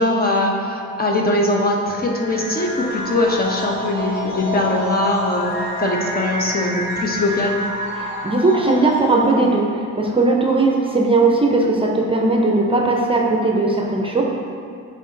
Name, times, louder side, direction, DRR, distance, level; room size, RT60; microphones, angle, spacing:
voice 1, 0.0-7.6, left 1 dB, 30° left, -1 dB, 1.1 m, -21 dB
sound 1, 1.9-9.5, equal, 85° left, 1.4 m, -28 dB
voice 2, 7.9-14.2, right 2 dB, 20° right, 0 dB, 0.7 m, -18 dB
9.9 x 3.8 x 3.9 m, 2.4 s
cardioid pair, 90°, 30 cm